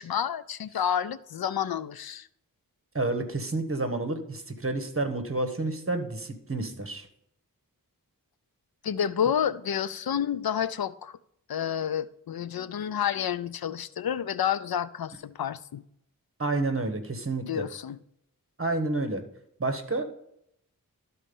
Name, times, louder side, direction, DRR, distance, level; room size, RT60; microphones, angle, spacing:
voice 1, 0.0-2.3 8.8-11.2 11.5-15.8 17.5-18.0, left 9 dB, 85° left, 0.5 m, -29 dB
voice 2, 2.9-7.1 16.4-17.6 18.6-19.2 19.6-20.0, right 2 dB, 40° right, 1.4 m, -29 dB
12.0 x 4.3 x 5.3 m
wide cardioid pair, 65°, 35 cm